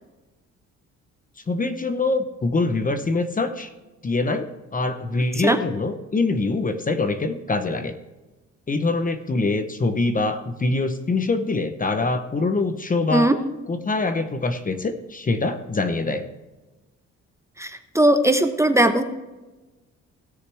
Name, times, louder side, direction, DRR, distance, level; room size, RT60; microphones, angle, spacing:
voice 1, 1.5-3.7 4.0-7.9 8.7-13.3 13.7-16.3, left 3 dB, 25° left, 9 dB, 0.9 m, -24 dB
voice 2, 17.6-19.0, right 1 dB, 10° right, 7 dB, 0.9 m, -19 dB
17.5 x 6.7 x 3.4 m, 1.2 s
cardioid pair, 90°, 30 cm